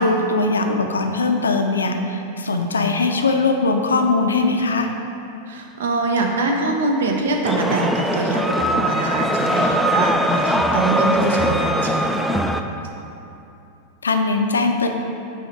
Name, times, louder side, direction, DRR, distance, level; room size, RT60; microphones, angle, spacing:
voice 1, 0.0-4.9 14.0-14.9, left 3 dB, 75° left, 5 dB, 0.5 m, -20 dB
voice 2, 5.5-12.2, right 2 dB, 60° right, 2 dB, 0.7 m, -23 dB
sound 1, 7.4-12.6, equal, ahead, 0.3 m, -21 dB
5.6 x 4.2 x 4.7 m, 2.7 s
figure-of-eight pair, 90°, 0 cm